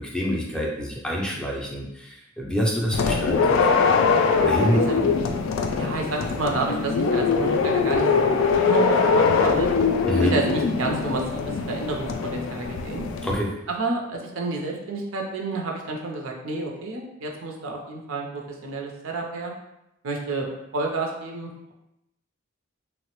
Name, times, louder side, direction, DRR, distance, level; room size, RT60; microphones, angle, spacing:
voice 1, 0.0-3.6 4.4-5.1 10.1-10.3 13.2-13.5, equal, 5° left, -2 dB, 0.4 m, -26 dB
sound 1, 2.9-13.4, left 5 dB, 70° left, 0.3 m, -22 dB
voice 2, 5.8-9.7 10.2-13.0 13.7-19.5 20.0-20.5 20.7-21.7, right 3 dB, 80° right, 1 dB, 0.5 m, -30 dB
3.1 x 2.0 x 3.0 m, 0.85 s
head